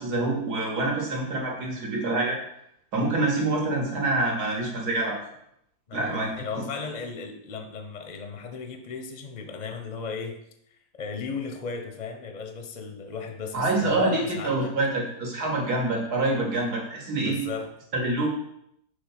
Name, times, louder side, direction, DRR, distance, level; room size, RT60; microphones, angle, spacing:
voice 1, 0.0-2.4 2.9-5.2 5.9-6.3 13.5-17.4 17.9-18.3, right 2 dB, 80° right, -1 dB, 2.2 m, -26 dB
voice 2, 5.9-10.4 11.0-14.8 17.2-17.7, left 5 dB, 45° left, 5 dB, 0.5 m, -35 dB
6.5 x 3.5 x 5.7 m, 0.74 s
omnidirectional pair, 1.7 m